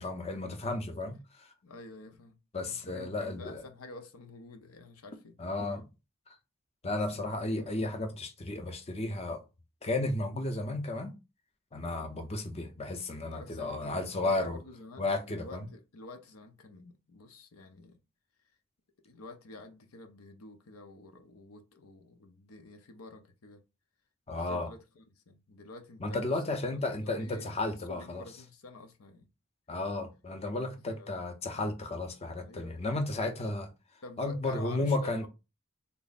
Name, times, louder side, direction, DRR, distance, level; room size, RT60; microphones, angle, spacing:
voice 1, 0.0-1.5 2.5-3.6 5.4-5.8 6.8-9.4 9.8-11.2 11.7-14.6 15.0-15.6 24.3-24.7 26.0-28.2 29.7-33.7 34.2-35.3, left 2 dB, 30° left, 0.5 m, -33 dB
voice 2, 1.6-2.4 2.7-5.4 6.8-7.8 12.0-12.3 13.3-18.0 19.0-23.6 24.3-29.3 30.9-31.2 32.4-32.9 34.0-35.3, left 2 dB, 85° left, 0.6 m, -50 dB
3.4 x 2.0 x 4.0 m
head